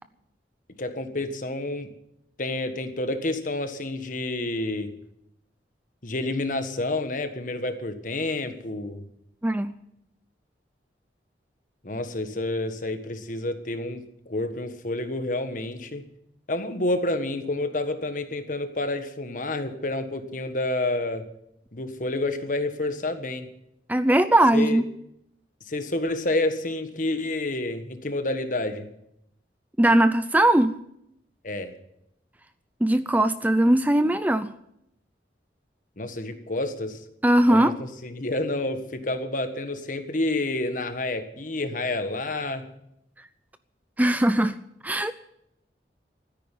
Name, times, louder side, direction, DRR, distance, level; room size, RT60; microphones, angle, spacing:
voice 1, 0.8-1.9 2.4-4.9 6.0-9.0 11.8-16.0 16.5-21.3 21.7-23.5 24.5-24.8 25.7-28.9 31.4-31.7 36.0-37.0 37.5-42.7, left 2 dB, 50° left, 1.4 m, -29 dB
voice 2, 9.4-9.7 23.9-24.9 29.8-30.8 32.8-34.5 37.2-37.7 44.0-44.6 44.8-45.1, right 1 dB, 10° right, 0.5 m, -20 dB
13.5 x 10.0 x 9.1 m
head